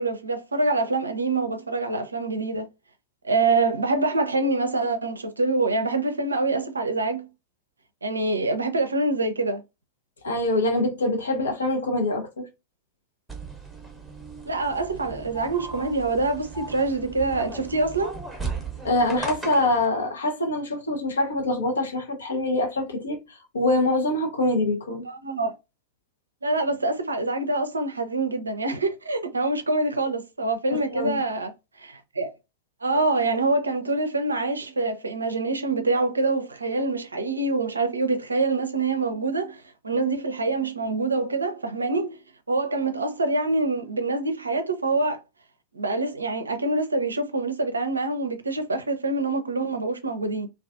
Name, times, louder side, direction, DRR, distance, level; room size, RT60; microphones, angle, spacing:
voice 1, 0.0-2.7 3.2-7.2 8.0-9.6 14.5-18.2 25.0-25.5 26.4-31.5 31.8-32.3 32.8-42.2 42.5-45.2 45.7-50.5, right 3 dB, 75° right, 0.4 m, -25 dB
voice 2, 10.2-12.5 18.8-25.1 30.7-31.2, left 2 dB, 70° left, 0.7 m, -25 dB
sound 1, 13.3-19.8, right 3 dB, 5° right, 0.8 m, -37 dB
2.3 x 2.3 x 2.4 m
figure-of-eight pair, 90°, 0 cm